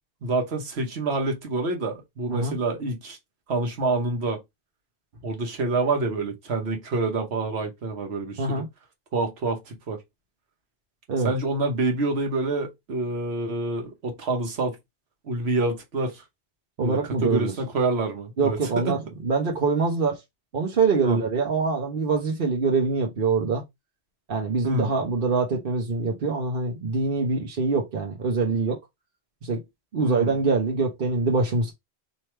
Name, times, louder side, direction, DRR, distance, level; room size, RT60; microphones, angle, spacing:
voice 1, 0.2-3.2 3.5-4.4 5.2-8.6 9.1-10.0 11.2-14.8 15.2-16.2 16.8-18.9 21.0-21.2 24.6-24.9 30.0-30.3, right 3 dB, 85° right, 1.3 m, -27 dB
voice 2, 16.8-17.5 18.4-20.2 20.5-23.6 24.3-28.8 29.4-29.6 29.9-31.7, right 4 dB, 60° right, 1.0 m, -24 dB
3.2 x 2.7 x 4.3 m
omnidirectional pair, 1.1 m